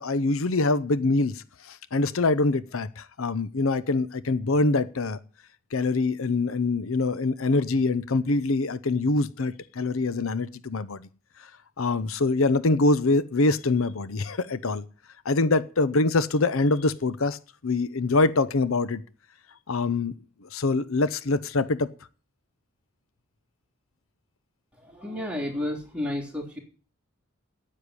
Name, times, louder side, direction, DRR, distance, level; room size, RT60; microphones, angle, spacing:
voice 1, 0.0-5.2 5.7-11.0 11.8-14.8 15.2-19.0 19.7-20.1 20.4-21.9, left 3 dB, 80° left, 0.7 m, -24 dB
voice 2, 24.7-26.6, left 1 dB, 5° right, 3.5 m, -32 dB
10.0 x 8.8 x 9.7 m
head